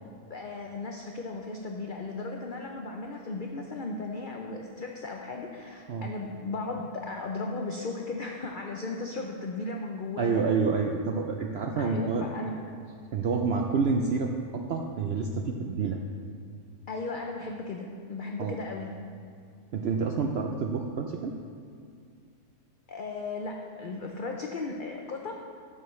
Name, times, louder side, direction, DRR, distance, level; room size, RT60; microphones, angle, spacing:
voice 1, 0.3-10.4 11.8-12.6 16.9-19.0 22.9-25.3, left 3 dB, 65° left, 1 dB, 0.5 m, -36 dB
voice 2, 10.2-12.3 13.1-16.0 18.4-18.6 19.7-21.3, right 5 dB, 75° right, 2 dB, 0.5 m, -28 dB
12.5 x 7.5 x 3.2 m, 2.2 s
omnidirectional pair, 1.6 m